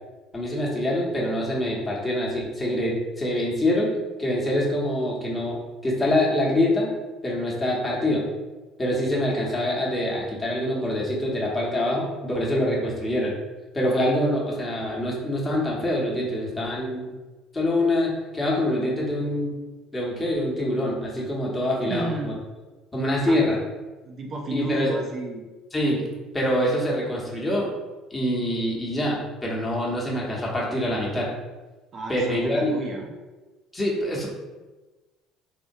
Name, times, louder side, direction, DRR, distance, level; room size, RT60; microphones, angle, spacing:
voice 1, 0.3-3.9 4.2-6.9 7.2-8.3 8.8-13.3 13.7-17.1 17.5-19.5 19.9-22.3 22.9-23.5 24.5-24.9 25.7-26.1 26.3-27.7 28.1-31.3 32.1-32.7 33.7-34.3, left 1 dB, 20° left, -4 dB, 1.0 m, -25 dB
voice 2, 21.9-22.4 23.3-23.6 24.0-25.5 31.9-33.1, right 2 dB, 45° right, 0 dB, 0.5 m, -31 dB
3.6 x 2.1 x 2.6 m, 1.2 s
supercardioid pair, 95°, 0 cm